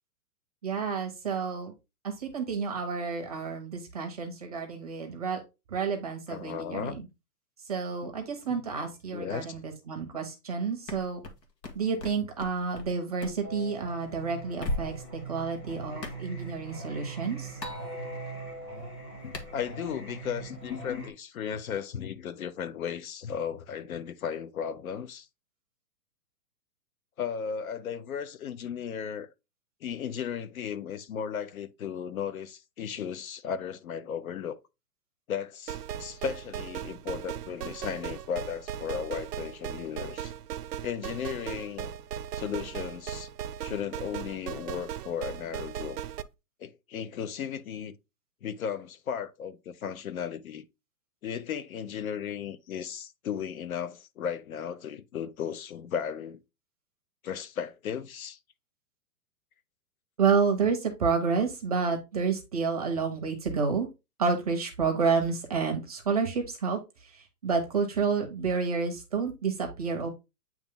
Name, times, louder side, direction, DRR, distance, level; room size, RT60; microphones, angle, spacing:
voice 1, 0.6-1.7 2.0-5.4 5.7-7.0 7.7-11.2 11.7-14.9 15.3-17.6 60.2-63.9 64.2-70.1, right 5 dB, 25° right, 0.7 m, -29 dB
voice 2, 6.3-7.0 8.0-8.1 8.5-8.7 9.1-9.6 19.2-25.3 27.2-29.3 29.8-34.6 35.3-40.3 40.8-41.9 42.3-43.3 43.6-46.0 46.6-47.9 48.4-50.6 51.2-56.4 57.2-58.4, left 8 dB, 60° left, 0.7 m, -35 dB
sound 1, 10.9-12.9 13.2-13.4 14.6-15.1 16.0-16.2 17.6-17.7 19.3-19.5, left 1 dB, 80° left, 1.9 m, -36 dB
Singing, 13.4-21.1, right 3 dB, 15° left, 0.9 m, -41 dB
sound 2, 35.7-46.2, right 10 dB, 75° right, 0.6 m, -38 dB
8.7 x 3.0 x 3.6 m
hypercardioid pair, 175°, 49 cm